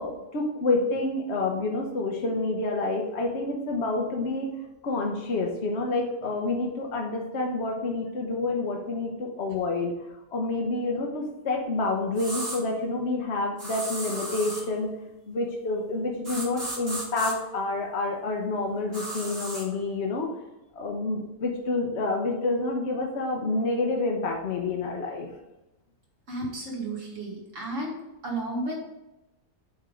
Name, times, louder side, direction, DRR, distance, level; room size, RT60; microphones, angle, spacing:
voice 1, 0.0-4.5 4.8-9.9 10.3-14.9 15.3-20.3 20.7-25.3, left 2 dB, 55° left, 0 dB, 1.1 m, -28 dB
sound 1, 12.2-12.6 13.6-14.7 16.2-17.3 18.9-19.6, right 1 dB, 45° right, 2.6 m, -34 dB
voice 2, 26.3-28.0 28.2-29.0, right 2 dB, 60° right, -3 dB, 2.4 m, -33 dB
8.3 x 3.7 x 5.1 m, 0.97 s
omnidirectional pair, 1.5 m